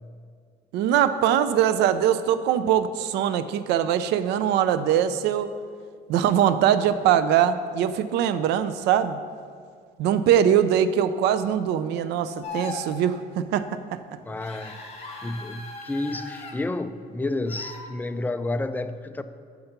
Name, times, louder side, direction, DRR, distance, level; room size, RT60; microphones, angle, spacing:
voice 1, 0.7-5.5 6.1-9.2 10.0-13.7, right 9 dB, 85° right, 13 dB, 0.5 m, -22 dB
sound 1, 12.4-12.9 14.4-16.5 17.5-17.8, left 3 dB, 40° left, 1.5 m, -38 dB
voice 2, 14.2-14.8 15.2-19.2, left 2 dB, 10° left, 10 dB, 0.4 m, -30 dB
7.0 x 5.8 x 6.6 m, 2.1 s
cardioid pair, 110°, 17 cm